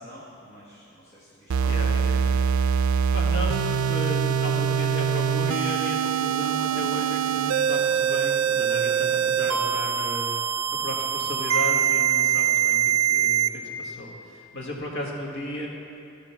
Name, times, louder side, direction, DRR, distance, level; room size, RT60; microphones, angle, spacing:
voice 1, 0.0-2.5, equal, 30° left, -8 dB, 1.3 m, -48 dB
sound 1, 1.5-13.5, right 8 dB, 80° right, 0.4 m, -23 dB
voice 2, 1.6-2.3 3.1-10.3 10.7-15.7, left 1 dB, 60° left, -2 dB, 1.6 m, -34 dB
13.0 x 5.1 x 5.7 m, 2.5 s
head